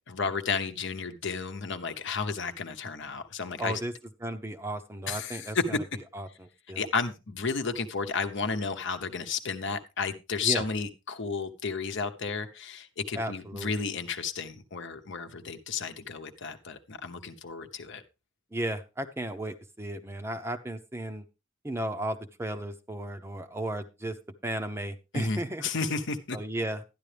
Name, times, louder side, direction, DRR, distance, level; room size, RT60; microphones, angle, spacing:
voice 1, 0.1-3.8 5.1-5.6 6.8-18.0 25.1-26.4, left 5 dB, 60° left, 7 dB, 1.0 m, -32 dB
voice 2, 3.6-3.9 4.2-5.8 6.1-6.9 10.4-10.6 13.1-13.7 18.5-21.2 21.6-24.2 24.4-25.7 26.3-26.9, right 1 dB, 10° right, 8 dB, 0.7 m, -34 dB
12.5 x 10.0 x 3.4 m, 0.28 s
head